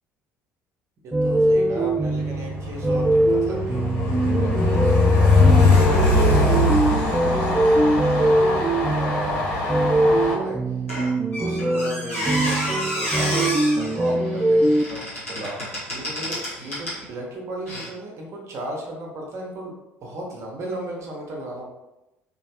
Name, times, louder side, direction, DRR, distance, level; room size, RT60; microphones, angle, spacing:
voice 1, 1.0-8.0 8.2-10.6 11.4-13.5 13.7-19.7 20.0-21.7, right 1 dB, 45° right, -2 dB, 1.0 m, -36 dB
sound 1, 1.1-14.8, right 1 dB, 15° right, 0.3 m, -22 dB
Train, 1.9-10.3, left 2 dB, 55° left, 1.1 m, -21 dB
Squeak, 10.9-17.0 17.7-17.9, equal, 90° left, 1.2 m, -30 dB
3.1 x 2.4 x 2.9 m, 0.94 s
figure-of-eight pair, 60°, 7 cm